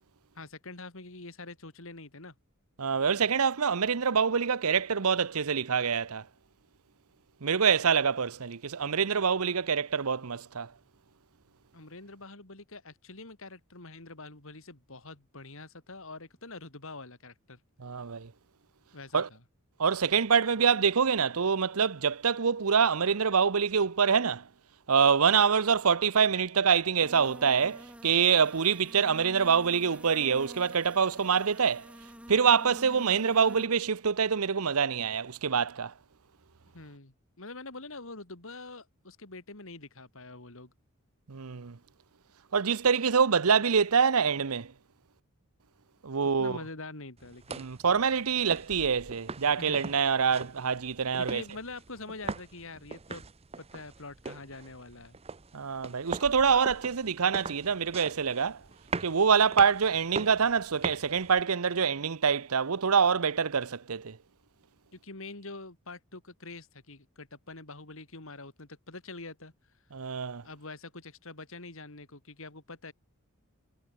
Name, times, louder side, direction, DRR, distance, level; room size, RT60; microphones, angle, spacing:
voice 1, 0.3-2.3 11.7-17.6 18.9-19.4 36.7-40.7 46.4-47.7 49.4-49.8 51.2-53.3 53.6-55.2 64.9-69.5 70.4-72.9, left 3 dB, 65° left, 3.2 m, -45 dB
voice 2, 2.8-6.2 7.4-10.7 17.8-18.3 19.1-19.3 19.8-24.4 24.9-31.9 32.3-35.9 41.3-41.8 42.5-44.7 46.0-46.6 47.6-51.4 55.5-58.6 59.0-64.2 69.9-70.4, right 6 dB, 80° right, 0.8 m, -25 dB
sound 1, 27.0-33.7, equal, 5° right, 3.5 m, -49 dB
sound 2, 47.2-61.4, right 4 dB, 30° right, 0.8 m, -42 dB
head